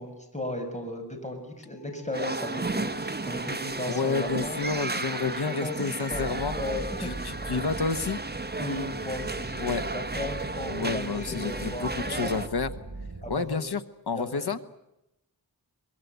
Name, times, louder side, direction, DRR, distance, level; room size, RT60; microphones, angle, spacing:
voice 1, 0.0-4.6 5.2-5.7 6.1-6.2 6.5-7.3 8.6-12.3 13.2-13.6 14.1-14.6, left 1 dB, 20° left, 4 dB, 6.5 m, -36 dB
sound 1, 1.6-12.9, left 6 dB, 10° right, 7.1 m, -55 dB
sound 2, 2.1-12.5, right 3 dB, 25° right, 1.4 m, -34 dB
voice 2, 3.9-6.6 7.0-8.2 9.6-9.8 10.7-12.7 13.3-13.8 14.1-14.6, left 5 dB, 80° left, 12 dB, 1.2 m, -30 dB
sound 3, 6.1-13.4, right 3 dB, 50° right, 6.8 m, -40 dB
24.0 x 22.5 x 8.2 m, 0.89 s
wide cardioid pair, 90°, 38 cm